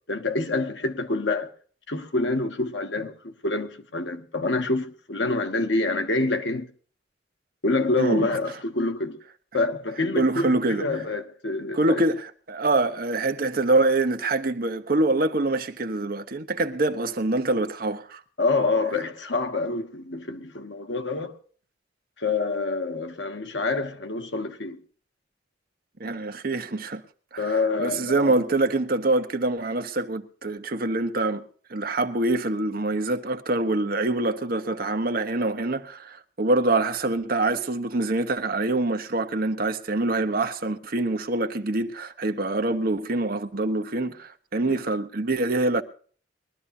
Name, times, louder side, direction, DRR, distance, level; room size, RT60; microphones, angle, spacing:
voice 1, 0.1-1.5 1.9-6.7 7.6-9.2 9.5-12.0 18.4-21.4 22.2-24.8 27.4-28.4 44.6-44.8, left 3 dB, 85° left, 1.4 m, -27 dB
voice 2, 10.1-10.8 11.7-12.2 12.5-18.2 26.0-27.0 27.3-31.4 31.7-45.8, right 2 dB, 55° right, 1.1 m, -25 dB
22.0 x 12.5 x 2.7 m
head